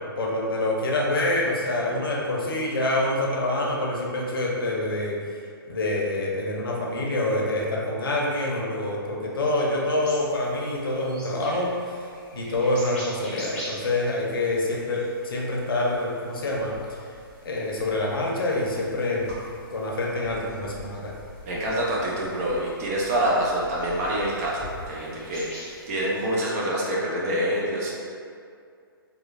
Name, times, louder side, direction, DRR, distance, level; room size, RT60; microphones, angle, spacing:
voice 1, 0.2-5.2 5.7-12.0 12.3-16.7 17.4-19.3 19.7-21.1, left 1 dB, 70° left, -3 dB, 0.6 m, -26 dB
sound 1, 10.0-26.4, left 1 dB, 10° left, 0.8 m, -44 dB
voice 2, 21.5-27.9, right 1 dB, 40° right, -4 dB, 0.6 m, -26 dB
2.9 x 2.2 x 2.3 m, 2.3 s
figure-of-eight pair, 130°, 12 cm